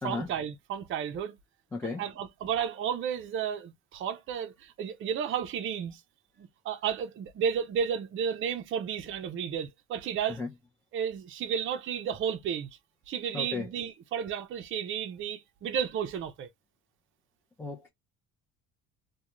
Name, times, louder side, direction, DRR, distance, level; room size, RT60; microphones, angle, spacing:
voice 1, 0.0-1.3 2.0-6.0 6.4-10.4 10.9-12.7 13.1-16.5, right 8 dB, 40° right, 0.5 m, -32 dB
voice 2, 1.7-2.0 10.4-10.5 13.3-13.7 17.6-17.9, left 3 dB, 10° left, 0.5 m, -34 dB
2.4 x 2.2 x 3.0 m
cardioid pair, 115°, 31 cm